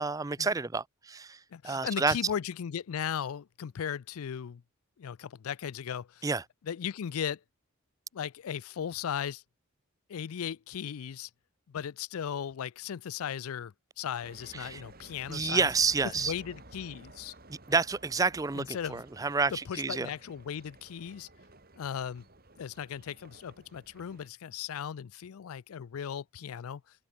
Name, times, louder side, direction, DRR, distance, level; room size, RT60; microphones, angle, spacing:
voice 1, 0.0-2.1 6.2-6.4 14.5-14.8 15.3-16.3 17.5-20.1, right 4 dB, 15° right, 0.4 m, -29 dB
voice 2, 1.5-4.6 5.0-6.3 6.6-7.4 8.1-9.4 10.1-11.3 11.7-15.7 16.0-17.3 18.5-19.0 19.7-21.3 21.8-22.3 22.6-26.8, left 8 dB, 80° left, 0.4 m, -37 dB
sound 1, 14.2-24.3, right 2 dB, 45° right, 3.7 m, -54 dB
head